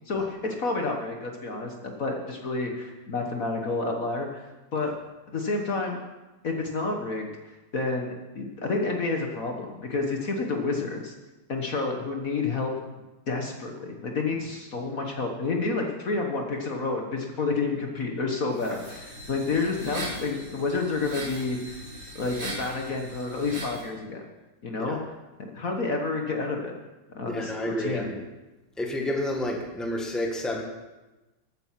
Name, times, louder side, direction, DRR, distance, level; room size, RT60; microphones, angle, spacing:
voice 1, 0.1-4.4 4.7-4.9 5.3-6.0 6.4-7.3 7.7-11.1 11.5-12.7 13.3-21.8 22.1-24.2 24.6-25.1 25.4-26.8 27.1-28.1, left 3 dB, 50° left, 2 dB, 1.6 m, -29 dB
sound 1, 18.5-23.8, equal, 70° right, 6.3 m, -39 dB
voice 2, 27.2-28.2 28.8-30.6, left 1 dB, ahead, 1 dB, 1.5 m, -30 dB
14.0 x 9.3 x 5.9 m, 1.1 s
omnidirectional pair, 2.0 m